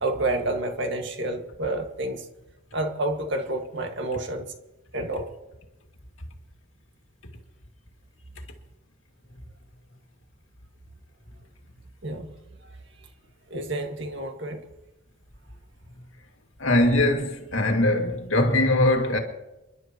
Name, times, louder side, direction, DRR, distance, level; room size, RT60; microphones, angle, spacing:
voice 1, 0.0-2.2 2.7-4.5 4.9-5.3 12.0-12.3 13.5-14.6, right 2 dB, 60° right, 1.9 m, -29 dB
voice 2, 16.6-19.2, left 1 dB, 80° left, 2.3 m, -21 dB
28.5 x 12.0 x 3.1 m
head